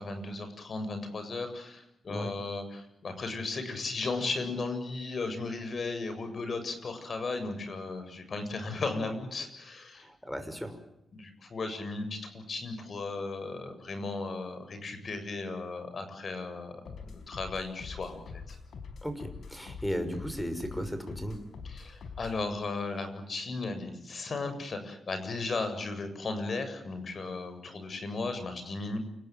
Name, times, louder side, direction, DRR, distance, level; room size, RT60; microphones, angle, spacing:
voice 1, 0.0-10.1 11.1-18.6 21.6-29.0, left 3 dB, 55° left, 9 dB, 7.5 m, -36 dB
voice 2, 10.0-10.8 19.0-21.4, equal, 5° left, 10 dB, 6.0 m, -35 dB
sound 1, 16.9-22.5, left 5 dB, 80° left, 4.9 m, -45 dB
28.5 x 19.5 x 9.3 m, 0.80 s
wide cardioid pair, 105°, 0 cm